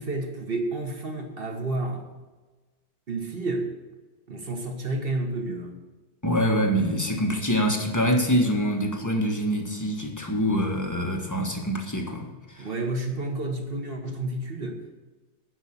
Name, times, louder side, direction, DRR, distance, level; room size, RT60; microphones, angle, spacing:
voice 1, 0.0-2.1 3.1-3.8 4.3-5.8 12.6-15.0, right 2 dB, 30° right, 3 dB, 1.4 m, -30 dB
voice 2, 6.2-12.7, equal, 10° left, 1 dB, 1.1 m, -25 dB
11.0 x 5.6 x 8.8 m, 1.2 s
omnidirectional pair, 2.2 m